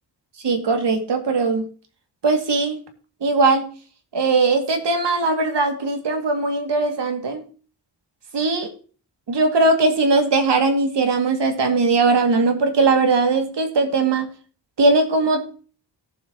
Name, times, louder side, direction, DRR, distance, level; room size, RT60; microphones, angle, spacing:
voice 1, 0.4-1.7 2.2-2.8 3.2-3.7 4.1-7.4 8.3-8.7 9.3-14.3 14.8-15.6, right 3 dB, 70° right, 5 dB, 2.4 m, -19 dB
17.0 x 7.5 x 2.9 m, 0.40 s
wide cardioid pair, 150°, 44 cm